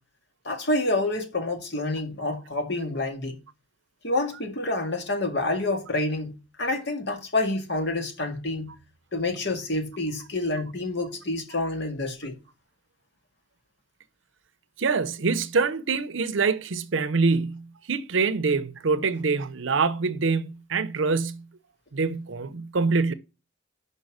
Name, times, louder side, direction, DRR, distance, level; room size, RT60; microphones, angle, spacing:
voice 1, 0.5-3.4 4.0-8.7 9.1-12.3, left 2 dB, 60° left, 1.9 m, -28 dB
voice 2, 14.8-21.4 21.9-23.1, right 4 dB, 70° right, 0.7 m, -25 dB
5.4 x 5.3 x 6.4 m
head